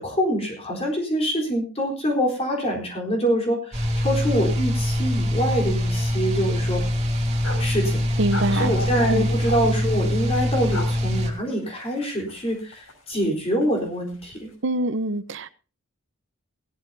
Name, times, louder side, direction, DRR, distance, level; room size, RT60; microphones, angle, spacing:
voice 1, 0.0-6.9 7.6-8.2 8.5-14.5, equal, 30° left, 0 dB, 3.9 m, -25 dB
sound 1, 3.7-11.3, left 1 dB, 30° right, 2.8 m, -24 dB
sound 2, 4.1-4.2 4.4-4.6 5.0-5.7 6.0-6.1 6.6-7.7 8.3-9.6 10.5-10.9 11.3-13.3 13.6-14.4, left 3 dB, 85° left, 5.6 m, -36 dB
voice 2, 8.2-8.7 9.1-9.3 14.6-15.5, right 1 dB, 65° right, 13 dB, 1.0 m, -24 dB
18.0 x 14.0 x 2.7 m, 0.35 s
head